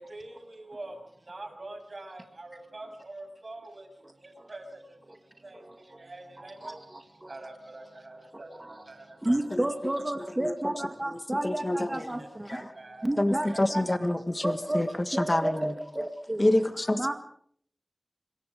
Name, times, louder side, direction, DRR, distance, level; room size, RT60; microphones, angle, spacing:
voice 1, 0.0-1.0 1.3-9.6 10.5-10.6 12.2-13.2 13.5-14.1 14.5-14.6 15.6-15.7, right 2 dB, 55° right, 3 dB, 7.4 m, -46 dB
voice 2, 9.3-11.6 11.9-12.2 13.1-13.5 13.7-13.8 14.4-14.8 15.1-15.7 16.0-16.1 16.3-16.4 17.0-17.1, right 1 dB, 25° right, 6 dB, 2.2 m, -29 dB
voice 3, 11.4-12.6 13.2-15.7 16.4-17.1, left 1 dB, 30° left, 9 dB, 1.6 m, -27 dB
26.0 x 22.5 x 5.1 m, 0.63 s
wide cardioid pair, 70°, 0 cm